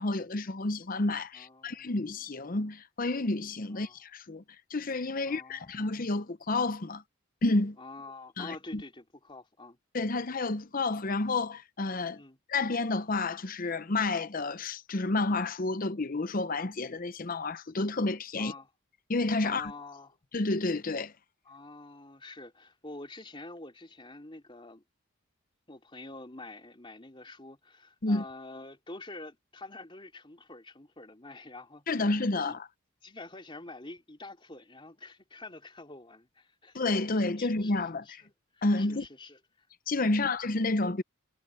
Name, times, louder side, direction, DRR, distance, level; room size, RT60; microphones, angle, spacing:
voice 1, 0.0-4.4 4.7-7.0 7.4-7.8 8.4-8.8 9.9-12.2 12.5-18.5 19.1-19.7 20.3-21.1 28.0-28.2 31.9-32.6 36.7-38.2 38.6-39.1 39.9-41.0, left 2 dB, 40° left, 0.8 m, -30 dB
voice 2, 1.3-2.0 3.7-4.0 5.2-5.8 7.8-9.8 12.1-12.4 18.4-18.7 19.4-20.2 21.5-24.8 25.7-32.1 32.4-32.6 33.0-36.8 37.1-37.7 38.1-38.2 38.5-39.7 40.1-40.3, left 2 dB, 25° left, 3.7 m, -47 dB
head